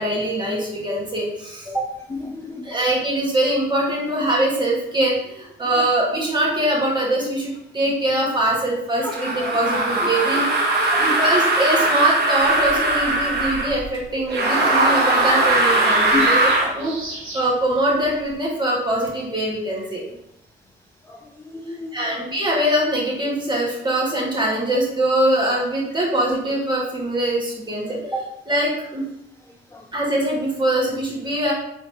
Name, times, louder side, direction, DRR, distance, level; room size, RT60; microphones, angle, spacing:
voice 1, 0.0-1.9 2.6-10.5 11.0-16.5 16.7-16.9 17.3-20.0 21.9-29.0 29.9-31.5, right 1 dB, 25° right, -4 dB, 1.5 m, -22 dB
voice 2, 2.1-2.8 9.4-9.5 10.6-11.2 16.1-16.3 21.1-21.2 21.5-21.9 29.7-29.8, left 4 dB, 15° left, 0 dB, 0.4 m, -30 dB
sound 1, 9.1-13.7 14.3-16.7, right 2 dB, 55° right, 1.0 m, -20 dB
sound 2, 12.3-18.3, right 1 dB, 80° right, 1.6 m, -38 dB
3.8 x 3.6 x 2.8 m, 0.80 s
cardioid pair, 90°, 20 cm